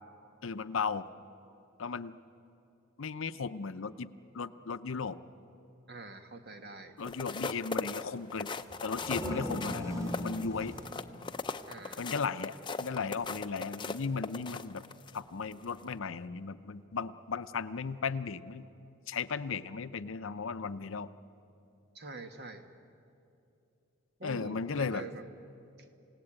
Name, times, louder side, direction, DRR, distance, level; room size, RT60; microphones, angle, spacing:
voice 1, 0.4-1.1 1.8-2.1 3.0-5.2 7.0-8.5 8.8-10.8 12.0-14.8 15.1-18.7 19.1-21.1 24.2-25.1, left 5 dB, 65° left, 13 dB, 0.6 m, -36 dB
voice 2, 5.9-6.9 11.7-12.0 21.9-22.7 24.2-25.2 25.8-25.9, right 2 dB, 50° right, 7 dB, 1.5 m, -45 dB
sound 1, 7.0-15.2 15.6-15.8, left 4 dB, 20° left, 0.6 m, -39 dB
sound 2, 8.7-12.3, equal, 15° right, 1.7 m, -40 dB
28.5 x 17.5 x 8.8 m, 2.8 s
head